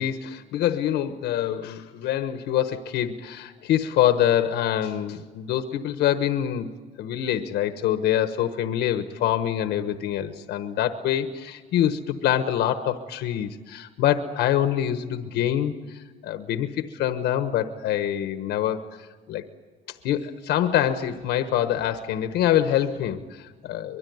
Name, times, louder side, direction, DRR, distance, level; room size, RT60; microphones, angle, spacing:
voice 1, 0.0-6.7 7.0-19.4 20.0-24.0, left 11 dB, 80° left, 9 dB, 1.3 m, -25 dB
24.0 x 22.5 x 9.5 m, 1.4 s
cardioid pair, 110°, 17 cm